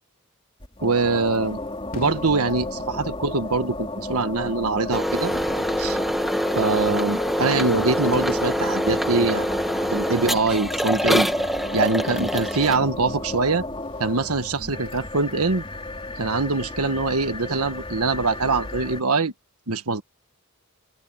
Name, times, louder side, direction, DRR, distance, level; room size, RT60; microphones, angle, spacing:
sound 1, 0.6-19.0, left 2 dB, 25° left, 3.4 m, -33 dB
voice 1, 0.8-1.6 1.9-5.3 5.8-6.0 6.5-9.6 9.9-11.3 11.7-13.6 14.0-15.6 16.2-19.3 19.7-20.0, right 3 dB, 80° right, 1.5 m, -23 dB
Fireworks, 1.9-3.6 4.4-4.5 5.2-10.5 11.5-13.3 13.9-14.3, left 1 dB, 40° left, 3.9 m, -40 dB
sound 2, 4.9-12.8, equal, ahead, 1.3 m, -25 dB
open air
head